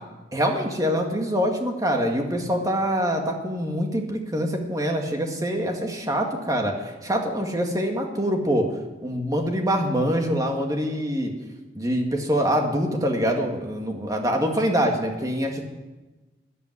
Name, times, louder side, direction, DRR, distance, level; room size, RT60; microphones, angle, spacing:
voice 1, 0.3-8.7 9.0-11.3 11.7-15.6, equal, 20° right, 2 dB, 2.0 m, -25 dB
13.5 x 11.0 x 9.6 m, 1.2 s
head